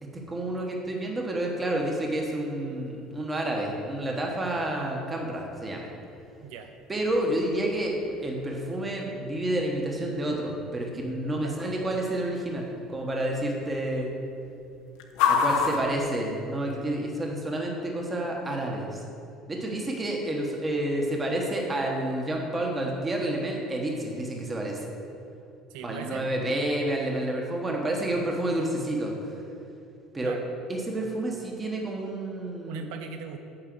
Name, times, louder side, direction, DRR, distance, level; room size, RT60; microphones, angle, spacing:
voice 1, 0.0-5.9 6.9-12.7 12.9-14.1 15.2-19.0 19.5-24.8 25.8-29.1 30.1-30.3 30.7-32.9, right 1 dB, 15° right, 0 dB, 1.2 m, -29 dB
sound 1, 2.2-17.0, left 6 dB, 90° left, 0.9 m, -35 dB
voice 2, 6.4-6.7 11.4-11.6 25.7-26.3 30.2-30.5 32.7-33.4, right 6 dB, 80° right, 6 dB, 0.8 m, -39 dB
8.9 x 5.7 x 7.6 m, 2.6 s
cardioid pair, 175°, 0 cm